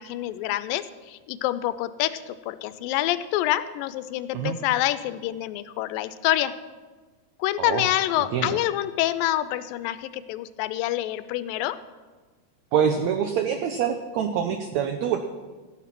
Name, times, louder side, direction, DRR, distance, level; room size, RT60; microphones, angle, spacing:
voice 1, 0.0-6.6 7.4-11.8, left 14 dB, 90° left, 14 dB, 2.3 m, -27 dB
voice 2, 7.6-7.9 8.2-8.6 12.7-15.2, right 8 dB, 75° right, 6 dB, 1.7 m, -25 dB
14.5 x 10.0 x 6.0 m, 1.4 s
omnidirectional pair, 3.9 m